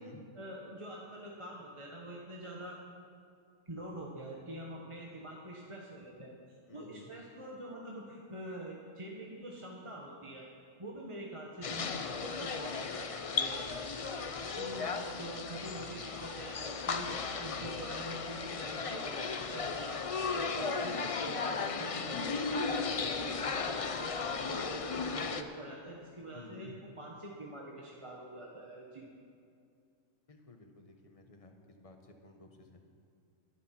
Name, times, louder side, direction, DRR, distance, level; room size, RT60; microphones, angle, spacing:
voice 1, 0.3-2.8 3.7-6.3 6.7-10.5 10.8-13.6 14.0-17.1 17.4-20.0 20.3-29.1, right 1 dB, 25° right, -2 dB, 1.2 m, -45 dB
voice 2, 6.7-7.1 11.7-12.1 20.4-20.9 26.3-26.8 30.3-32.9, left 2 dB, 30° left, 4 dB, 1.2 m, -54 dB
sound 1, 11.6-25.4, left 4 dB, 45° left, 0.4 m, -36 dB
12.0 x 11.5 x 5.9 m, 2.4 s
omnidirectional pair, 1.4 m